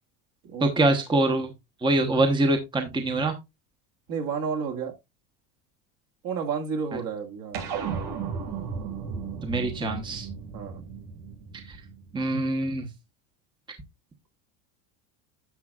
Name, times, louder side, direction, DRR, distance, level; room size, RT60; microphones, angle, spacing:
voice 1, 0.6-1.5 1.8-3.4 9.4-10.3 11.7-11.8 12.1-12.9, right 2 dB, 10° right, 1.0 m, -24 dB
voice 2, 4.1-4.9 6.2-7.8 10.5-10.8, right 6 dB, 50° right, 2.0 m, -31 dB
sound 1, 7.5-12.3, right 6 dB, 70° right, 2.5 m, -35 dB
10.5 x 6.9 x 2.4 m
supercardioid pair, 130°, 43 cm